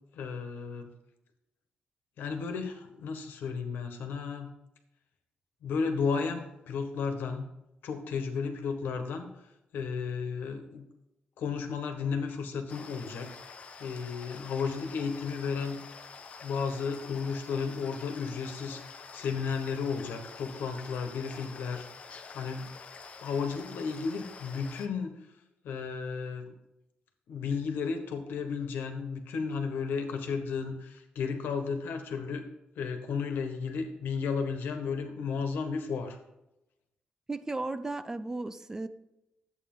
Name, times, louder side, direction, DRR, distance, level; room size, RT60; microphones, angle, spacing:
voice 1, 0.1-0.9 2.2-4.5 5.6-7.5 7.8-9.3 9.7-10.8 11.4-15.8 16.4-21.9 22.3-22.7 23.2-25.1 25.6-26.5 27.3-32.4 32.7-36.2, left 5 dB, 85° left, 6 dB, 1.5 m, -33 dB
sound 1, 12.7-24.9, left 5 dB, 40° left, 0.9 m, -47 dB
voice 2, 37.3-38.9, right 2 dB, 15° right, 12 dB, 0.5 m, -35 dB
11.0 x 8.3 x 3.9 m, 0.89 s
wide cardioid pair, 155°, 3 cm